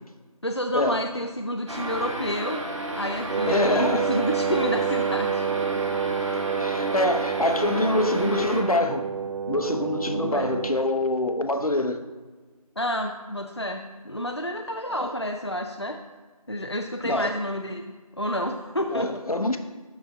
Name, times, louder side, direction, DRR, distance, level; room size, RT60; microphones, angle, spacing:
voice 1, 0.4-2.6 2.9-5.4 7.7-8.0 10.1-10.5 12.8-16.0 16.5-19.1, equal, 45° left, 3 dB, 0.5 m, -29 dB
sound 1, 1.7-8.6, right 1 dB, 55° right, 1.6 m, -32 dB
Wind instrument woodwind instrument, 3.3-10.9, right 7 dB, 75° right, 0.5 m, -28 dB
voice 2, 3.5-4.1 6.6-9.1 9.4-12.0 14.9-15.1 17.0-17.4 18.9-19.6, left 1 dB, 70° left, 8 dB, 0.9 m, -25 dB
12.5 x 4.3 x 3.7 m, 1.3 s
figure-of-eight pair, 180°, 19 cm